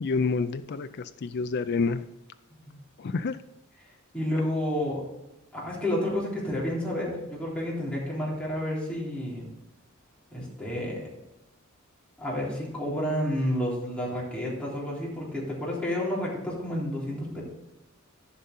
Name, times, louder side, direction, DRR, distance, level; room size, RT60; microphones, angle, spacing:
voice 1, 0.0-2.1 3.0-3.4, left 4 dB, 50° left, 10 dB, 0.4 m, -28 dB
voice 2, 4.1-5.0 5.5-9.5 10.3-11.0 12.2-17.4, left 1 dB, 5° left, -6 dB, 3.5 m, -30 dB
14.0 x 5.6 x 3.8 m, 0.96 s
head